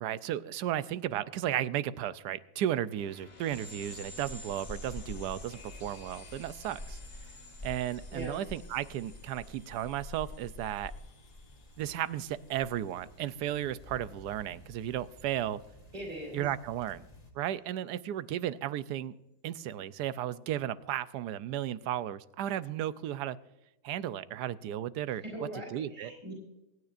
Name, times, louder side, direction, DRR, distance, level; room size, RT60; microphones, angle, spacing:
voice 1, 0.0-7.0 7.6-10.9 11.8-15.6 16.3-17.1 17.3-19.1 19.4-23.4 23.8-26.1, right 11 dB, 85° right, 15 dB, 1.2 m, -34 dB
sound 1, 2.9-13.1, left 3 dB, 70° left, 2.4 m, -52 dB
sound 2, 3.5-17.3, left 1 dB, 25° left, 1.8 m, -49 dB
voice 2, 15.9-16.4 25.2-26.3, right 1 dB, 30° right, -2 dB, 3.8 m, -40 dB
27.0 x 9.5 x 2.5 m, 0.97 s
omnidirectional pair, 1.7 m